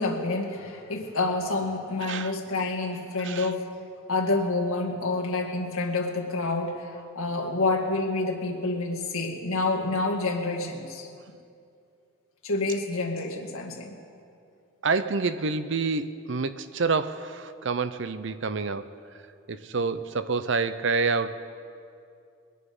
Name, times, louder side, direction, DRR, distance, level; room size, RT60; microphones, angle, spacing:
voice 1, 0.0-3.7 4.1-11.1 12.4-14.0, left 3 dB, 85° left, 1 dB, 1.9 m, -28 dB
voice 2, 2.0-2.3 3.2-3.5 14.8-18.9 19.5-21.3, right 4 dB, 60° right, 12 dB, 0.6 m, -27 dB
21.5 x 10.0 x 5.5 m, 2.5 s
head